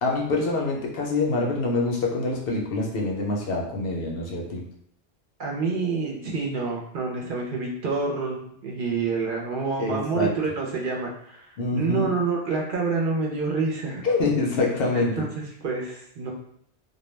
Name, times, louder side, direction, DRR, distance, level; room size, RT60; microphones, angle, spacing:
voice 1, 0.0-4.6 9.8-10.3 11.6-12.1 14.0-15.3, left 3 dB, 65° left, -1 dB, 0.8 m, -25 dB
voice 2, 5.4-14.0 14.9-16.3, right 4 dB, 60° right, -2 dB, 0.7 m, -28 dB
2.2 x 2.1 x 3.1 m, 0.68 s
omnidirectional pair, 1.1 m